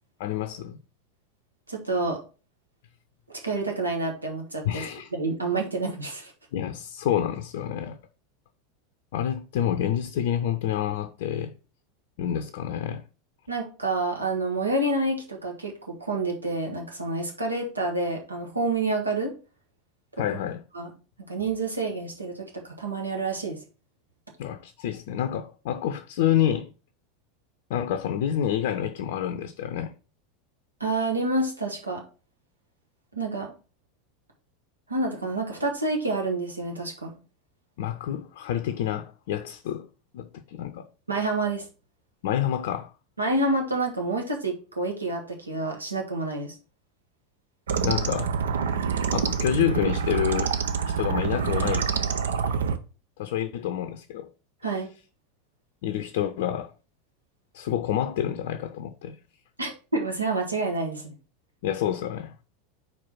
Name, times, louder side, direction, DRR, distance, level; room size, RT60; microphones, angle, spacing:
voice 1, 0.2-0.8 4.6-5.1 6.5-8.0 9.1-11.5 12.2-13.0 20.2-20.6 24.4-26.7 27.7-29.9 37.8-39.9 40.1-40.9 42.2-42.9 47.8-48.3 49.1-50.5 51.0-51.9 53.2-54.3 55.8-56.7 57.5-59.2 61.6-62.3, left 10 dB, 55° left, 0.5 m, -28 dB
voice 2, 1.7-2.2 3.3-4.8 5.1-6.3 13.5-19.3 20.7-20.9 21.3-23.6 30.8-32.0 33.1-33.5 34.9-37.2 41.1-41.7 43.2-46.5 54.6-54.9 59.6-61.1, right 2 dB, 85° right, 1.4 m, -28 dB
sound 1, 47.7-52.8, right 6 dB, 65° right, 0.6 m, -26 dB
4.6 x 4.6 x 5.7 m
figure-of-eight pair, 85°, 0 cm